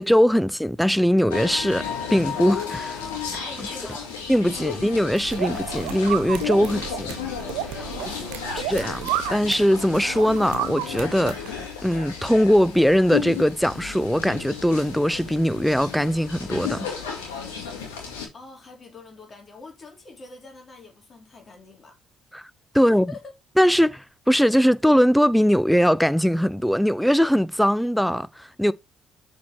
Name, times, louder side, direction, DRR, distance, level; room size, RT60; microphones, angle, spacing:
voice 1, 0.0-3.0 4.3-7.2 8.6-16.9 22.3-22.4 22.7-23.1 23.6-28.7, equal, ahead, 0.5 m, -21 dB
sound 1, 1.3-18.3, left 7 dB, 85° left, 2.3 m, -33 dB
voice 2, 3.4-4.2 4.5-4.9 7.7-8.7 18.3-22.0 22.7-23.3, left 3 dB, 40° left, 3.1 m, -45 dB
Bowed string instrument, 4.1-8.7, left 3 dB, 60° left, 2.5 m, -50 dB
sound 2, 5.2-11.6, right 13 dB, 80° right, 0.7 m, -32 dB
7.3 x 4.6 x 4.3 m
hypercardioid pair, 50°, 0 cm